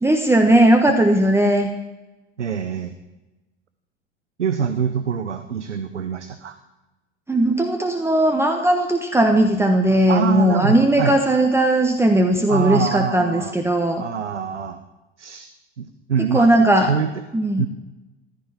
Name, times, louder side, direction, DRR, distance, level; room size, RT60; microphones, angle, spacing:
voice 1, 0.0-1.7 7.3-14.0 16.3-16.9 17.3-17.7, right 1 dB, 5° right, 4 dB, 1.3 m, -17 dB
voice 2, 2.4-2.9 4.4-6.5 10.1-11.2 12.5-13.6 14.0-14.8 15.2-15.5 15.8-16.5 16.8-17.1 17.6-17.7, right 7 dB, 85° right, 9 dB, 0.8 m, -24 dB
15.0 x 12.5 x 4.4 m, 1.1 s
figure-of-eight pair, 80°, 34 cm